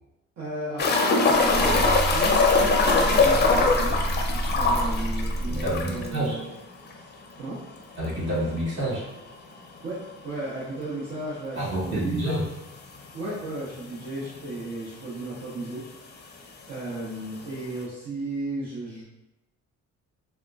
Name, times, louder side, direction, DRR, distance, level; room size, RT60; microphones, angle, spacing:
voice 1, 0.4-4.1 4.5-6.5 7.4-7.6 9.8-12.3 13.1-15.8 16.2-19.0, right 2 dB, 65° right, -9 dB, 1.0 m, -34 dB
sound 1, 0.8-6.2 6.4-6.5 6.9-7.0 9.8-9.9 11.6-11.7 12.4-12.5 12.8-12.9 13.8-13.9 14.0-14.6 15.6-15.7, left 3 dB, 35° left, 0.5 m, -22 dB
sound 2, 1.3-6.2, right 1 dB, 20° right, 0.5 m, -29 dB
voice 2, 5.6-6.4 8.0-9.0 11.6-12.4, right 1 dB, 40° right, -7 dB, 1.5 m, -28 dB
3.6 x 2.2 x 2.3 m, 1.0 s
cardioid pair, 90°, 30 cm